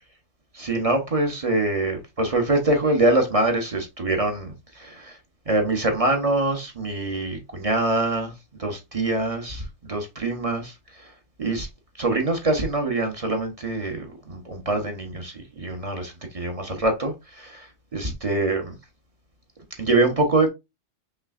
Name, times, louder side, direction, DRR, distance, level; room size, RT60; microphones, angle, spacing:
voice 1, 0.5-5.2 5.5-8.3 8.6-11.1 11.4-11.7 12.0-18.7 19.8-20.5, right 2 dB, 30° right, 0.8 m, -24 dB
5.6 x 3.1 x 2.4 m
omnidirectional pair, 1.4 m